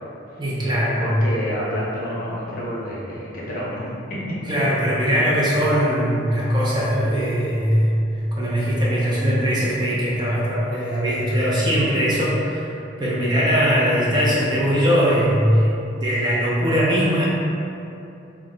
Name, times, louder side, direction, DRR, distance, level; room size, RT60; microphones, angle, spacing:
voice 1, 0.4-1.1 4.5-8.0 8.3-17.3, equal, 25° right, -8 dB, 0.4 m, -20 dB
voice 2, 1.0-4.2, equal, 45° left, -6 dB, 0.5 m, -29 dB
2.2 x 2.0 x 3.7 m, 2.7 s
head